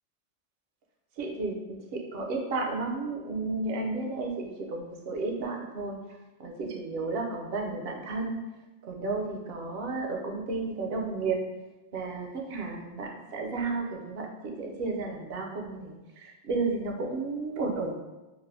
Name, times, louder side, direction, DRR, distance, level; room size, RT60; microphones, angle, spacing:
voice 1, 1.2-6.0 6.4-8.4 8.9-11.4 11.9-18.0, right 3 dB, 65° right, 1 dB, 0.7 m, -33 dB
3.3 x 2.4 x 2.6 m, 1.1 s
omnidirectional pair, 1.1 m